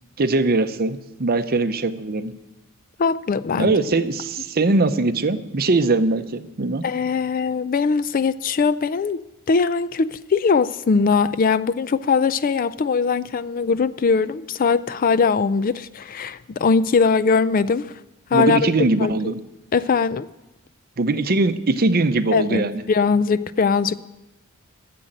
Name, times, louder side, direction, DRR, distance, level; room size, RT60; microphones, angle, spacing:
voice 1, 0.2-2.3 3.5-6.8 18.3-19.4 21.0-22.8, right 3 dB, 45° right, 0.6 m, -21 dB
voice 2, 3.0-3.8 6.8-9.2 9.5-17.9 18.3-18.7 19.0-19.3 19.7-20.3 22.3-24.0, left 5 dB, 40° left, 0.3 m, -21 dB
13.0 x 7.7 x 8.8 m
head